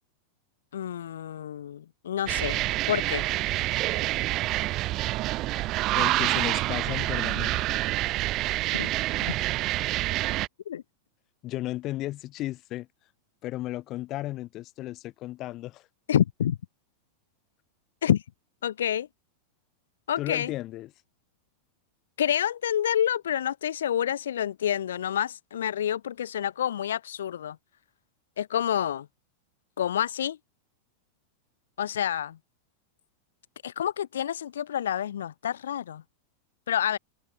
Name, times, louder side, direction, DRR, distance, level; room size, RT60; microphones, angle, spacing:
voice 1, 0.7-2.6 2.9-3.3 8.7-8.9 10.7-10.8 16.1-16.6 18.0-18.2 18.6-19.1 20.1-20.5 22.2-27.5 28.4-29.0 29.8-30.4 31.8-32.3 33.6-36.0 36.7-37.0, left 10 dB, 65° left, 1.4 m, -28 dB
sound 1, 2.3-10.5, right 17 dB, 35° right, 1.8 m, -27 dB
voice 2, 5.9-7.8 11.4-12.9 13.4-15.8 20.2-20.9, left 16 dB, 35° left, 8.0 m, -34 dB
open air
figure-of-eight pair, 90°, 0 cm